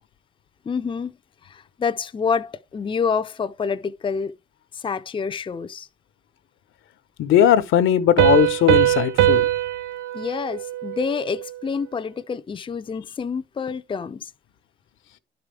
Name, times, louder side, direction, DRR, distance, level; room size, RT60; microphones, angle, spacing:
voice 1, 0.7-1.1 1.4-4.3 4.7-5.9 10.1-14.3, left 6 dB, 25° left, 0.5 m, -27 dB
voice 2, 7.2-9.4, left 10 dB, 85° left, 1.0 m, -18 dB
Piano, 8.2-11.6, right 13 dB, 90° right, 0.6 m, -21 dB
11.0 x 4.8 x 3.4 m
cardioid pair, 90°, 20 cm